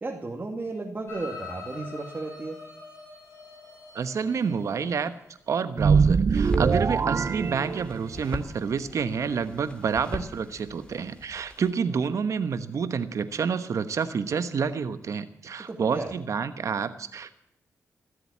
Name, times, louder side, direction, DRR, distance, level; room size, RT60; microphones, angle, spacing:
voice 1, 0.0-2.6 10.1-10.3 15.7-16.2, right 3 dB, 35° right, 0 dB, 2.3 m, -34 dB
sound 1, 1.1-5.3 7.5-7.6, left 4 dB, 45° left, 6.2 m, -44 dB
voice 2, 3.9-5.1 5.5-17.4, right 6 dB, 65° right, 11 dB, 1.1 m, -28 dB
sound 2, 5.8-8.3, right 5 dB, 50° right, 0.6 m, -23 dB
sound 3, 6.3-11.7, left 1 dB, 15° left, 2.4 m, -41 dB
20.0 x 7.9 x 8.6 m, 0.72 s
cardioid pair, 60°, 6 cm